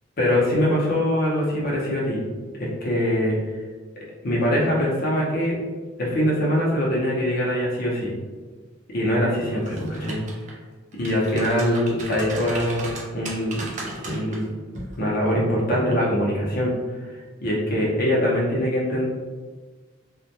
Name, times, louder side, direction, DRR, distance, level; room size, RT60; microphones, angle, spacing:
voice 1, 0.2-2.2 2.6-3.4 4.2-5.6 6.0-8.1 8.9-10.2 10.9-12.9 13.1-14.5 15.0-16.7 17.4-19.1, equal, 45° left, -4 dB, 0.6 m, -23 dB
sound 1, 9.6-10.5 10.9-14.4 14.7-15.0, right 2 dB, 35° right, 0.3 m, -36 dB
2.1 x 2.1 x 2.7 m, 1.4 s
head